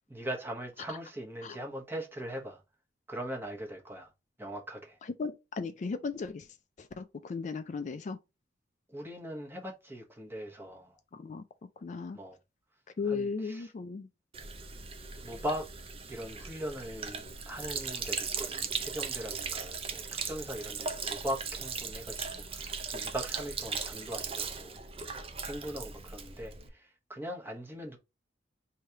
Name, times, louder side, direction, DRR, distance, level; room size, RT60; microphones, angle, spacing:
voice 1, 0.1-2.6 3.1-4.1 4.4-5.0 8.9-11.0 12.1-12.4 13.1-13.7 15.2-15.7 16.1-24.8 25.4-28.0, equal, 10° right, 1.1 m, -40 dB
voice 2, 5.0-6.5 6.8-8.2 11.1-11.4 11.8-12.2 13.0-14.1, left 4 dB, 40° left, 0.3 m, -36 dB
Sink (filling or washing), 14.3-26.7, right 5 dB, 30° right, 0.6 m, -38 dB
3.1 x 2.8 x 4.6 m
head